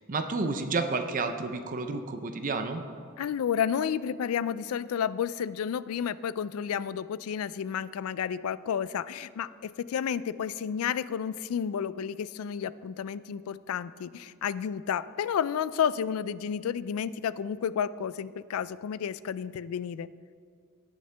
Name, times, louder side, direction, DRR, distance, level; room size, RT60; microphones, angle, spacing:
voice 1, 0.0-2.8, right 3 dB, 40° right, 7 dB, 0.6 m, -30 dB
voice 2, 3.2-20.1, left 8 dB, 90° left, 17 dB, 0.3 m, -31 dB
17.0 x 6.5 x 3.4 m, 2.1 s
head